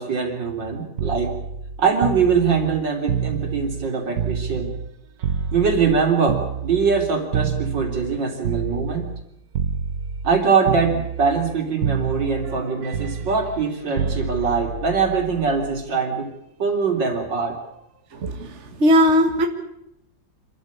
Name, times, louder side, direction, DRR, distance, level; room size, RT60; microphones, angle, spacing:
voice 1, 0.0-1.3 1.8-4.7 5.5-9.1 10.2-16.3 16.6-17.6, right 5 dB, 75° right, 3 dB, 4.2 m, -22 dB
sound 1, 1.0-4.9 5.2-9.2 9.5-10.4 10.7-11.6 11.8-15.8 17.0-17.3, right 7 dB, 60° right, 1.5 m, -28 dB
voice 2, 18.2-18.5 18.8-19.5, equal, 40° right, 5 dB, 2.0 m, -17 dB
26.5 x 13.5 x 8.6 m, 0.84 s
omnidirectional pair, 2.0 m